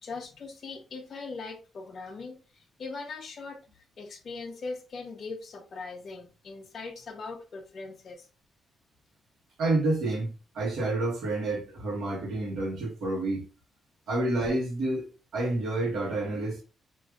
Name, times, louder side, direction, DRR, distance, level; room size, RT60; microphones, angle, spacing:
voice 1, 0.0-8.3, left 4 dB, 45° left, 0.5 m, -40 dB
voice 2, 9.6-13.4 14.1-15.0 15.3-16.6, right 2 dB, 75° right, 1.1 m, -29 dB
4.7 x 2.4 x 2.3 m
cardioid pair, 135°, 0 cm